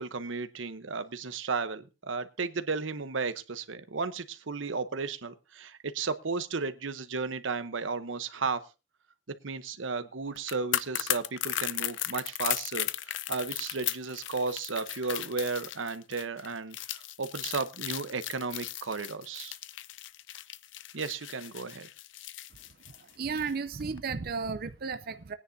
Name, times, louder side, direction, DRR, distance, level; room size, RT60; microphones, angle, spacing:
voice 1, 0.0-8.6 9.4-19.6 20.9-21.9, right 4 dB, 90° right, 0.9 m, -34 dB
sound 1, 10.4-23.5 23.8-24.0, left 13 dB, 75° left, 0.6 m, -36 dB
voice 2, 23.2-25.3, right 5 dB, 50° right, 0.6 m, -33 dB
21.0 x 10.0 x 2.7 m
head